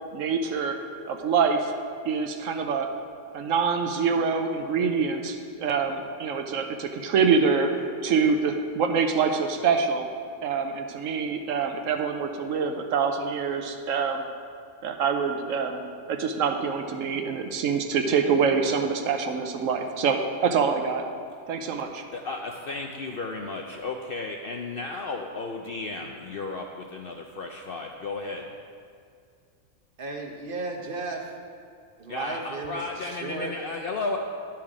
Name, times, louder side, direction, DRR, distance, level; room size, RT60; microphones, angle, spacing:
voice 1, 0.1-0.8 1.1-1.7 2.0-2.9 3.3-7.7 8.0-10.1 10.4-14.2 14.8-15.8 16.1-21.0 21.5-22.0, right 5 dB, 70° right, 6 dB, 1.0 m, -25 dB
voice 2, 22.1-28.5 32.1-34.2, left 3 dB, 60° left, 2 dB, 0.6 m, -34 dB
voice 3, 30.0-31.3 32.0-33.5, right 3 dB, 45° right, 2 dB, 0.9 m, -34 dB
10.5 x 6.0 x 4.9 m, 2.3 s
omnidirectional pair, 1.5 m